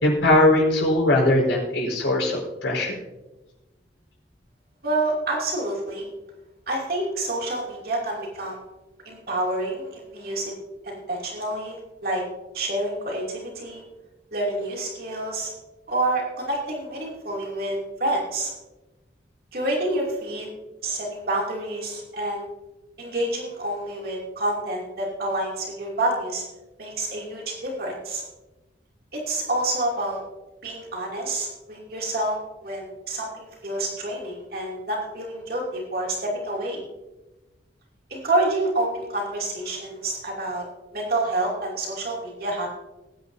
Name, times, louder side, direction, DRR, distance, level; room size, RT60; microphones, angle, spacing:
voice 1, 0.0-3.0, left 1 dB, 80° left, -2 dB, 4.9 m, -20 dB
voice 2, 4.8-6.1 6.7-8.6 9.0-10.5 10.8-12.2 12.5-13.8 14.3-15.5 15.9-18.5 19.5-20.5 20.8-22.4 23.0-26.4 26.8-28.2 29.1-30.2 30.6-36.8 38.1-40.6 40.9-42.7, right 1 dB, 55° right, -2 dB, 2.7 m, -28 dB
20.0 x 9.8 x 2.7 m, 1.1 s
head